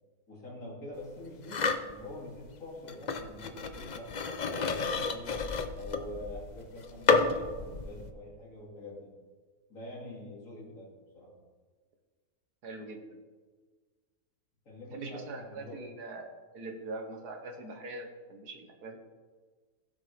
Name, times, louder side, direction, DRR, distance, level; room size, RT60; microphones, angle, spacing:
voice 1, 0.3-4.1 4.3-5.4 5.7-9.1 9.7-10.9 11.1-11.3 14.6-15.9, left 1 dB, 55° left, -4 dB, 3.1 m, -45 dB
sound 1, 1.5-1.9 2.9-8.1, left 4 dB, 80° left, 0.4 m, -30 dB
voice 2, 12.6-13.0 14.9-16.3 16.5-19.0, right 2 dB, 80° right, 4 dB, 1.8 m, -42 dB
15.5 x 7.2 x 3.4 m, 1.4 s
omnidirectional pair, 1.7 m